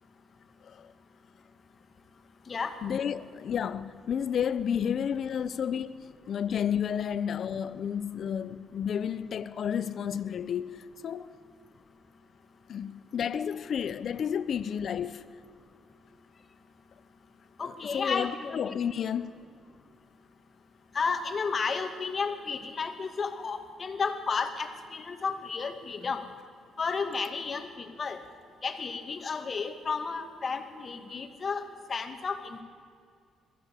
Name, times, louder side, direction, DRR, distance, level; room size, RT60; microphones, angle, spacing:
voice 1, 0.1-0.6 1.1-1.4 1.8-2.8 11.6-12.0 12.5-12.6 15.7-16.0 16.3-19.0 19.8-20.1 20.9-26.3 26.8-28.2 28.6-32.6, left 5 dB, 40° left, 2.3 m, -34 dB
voice 2, 2.8-11.3 12.7-15.3 17.9-19.3, left 8 dB, 60° left, 0.8 m, -31 dB
22.0 x 15.0 x 8.5 m
cardioid pair, 90°, 0 cm